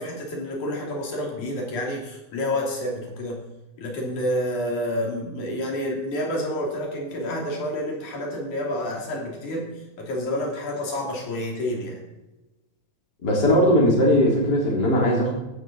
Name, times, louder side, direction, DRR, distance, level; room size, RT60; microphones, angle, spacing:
voice 1, 0.0-3.4 3.8-9.7 10.0-12.0, left 1 dB, 80° left, -1 dB, 4.4 m, -29 dB
voice 2, 13.2-15.3, equal, 35° left, -2 dB, 3.9 m, -19 dB
15.0 x 12.5 x 4.3 m, 0.99 s
omnidirectional pair, 3.5 m